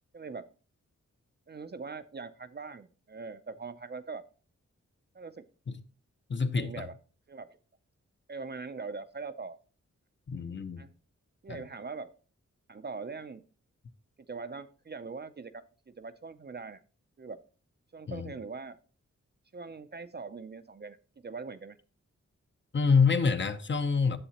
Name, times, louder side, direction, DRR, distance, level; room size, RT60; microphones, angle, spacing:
voice 1, 0.1-0.5 1.5-4.2 5.1-5.5 6.6-7.0 7.3-7.6 8.3-9.6 10.8-10.9 11.4-12.1 12.7-13.4 14.3-16.8 17.2-17.4 17.9-18.8 19.5-21.8, right 4 dB, 35° right, 0.4 m, -42 dB
voice 2, 6.3-6.9 10.3-10.8 11.5-11.6 18.1-18.3 22.7-24.2, left 5 dB, 40° left, 0.6 m, -26 dB
10.0 x 7.3 x 2.8 m
wide cardioid pair, 120°, 30 cm